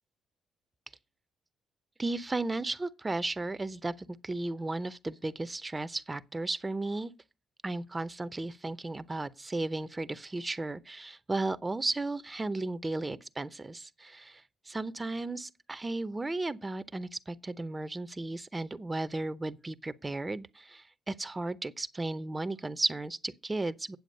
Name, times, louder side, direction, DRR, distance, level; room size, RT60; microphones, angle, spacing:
voice 1, 2.0-7.1 7.6-24.0, right 2 dB, 20° right, 0.7 m, -35 dB
9.3 x 7.7 x 5.3 m
cardioid pair, 90°, 0 cm